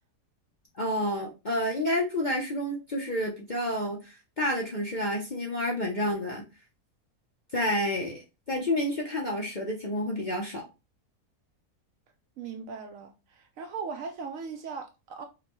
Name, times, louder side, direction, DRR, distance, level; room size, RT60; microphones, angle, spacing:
voice 1, 0.8-6.4 7.5-8.2 8.5-10.6, left 1 dB, 45° left, 0.6 m, -29 dB
voice 2, 12.4-15.3, right 5 dB, 70° right, 0.8 m, -38 dB
5.1 x 2.2 x 3.0 m
omnidirectional pair, 1.7 m